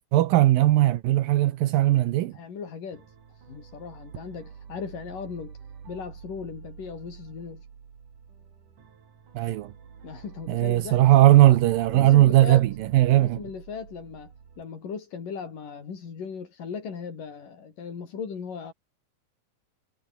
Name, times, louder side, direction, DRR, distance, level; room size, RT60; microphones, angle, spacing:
voice 1, 0.0-2.3 9.4-9.7 10.5-13.4, right 15 dB, 80° right, 2.7 m, -19 dB
voice 2, 2.3-5.6 5.9-7.7 10.0-11.6 11.9-12.7 13.1-18.7, left 6 dB, 65° left, 5.6 m, -38 dB
sound 1, 2.9-14.6, right 7 dB, 65° right, 4.7 m, -47 dB
omnidirectional pair, 4.1 m